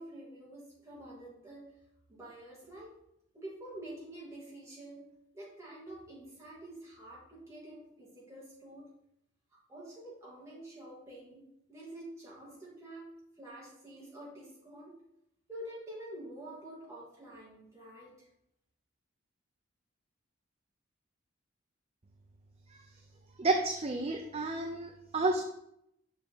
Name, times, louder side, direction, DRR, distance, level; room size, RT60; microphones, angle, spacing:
voice 1, 0.0-1.8 2.1-2.9 3.3-8.9 9.7-15.0 15.5-18.1, right 1 dB, 15° right, -6 dB, 2.6 m, -48 dB
voice 2, 23.4-25.4, right 2 dB, 30° right, 4 dB, 0.5 m, -30 dB
6.7 x 6.1 x 3.8 m, 0.78 s
head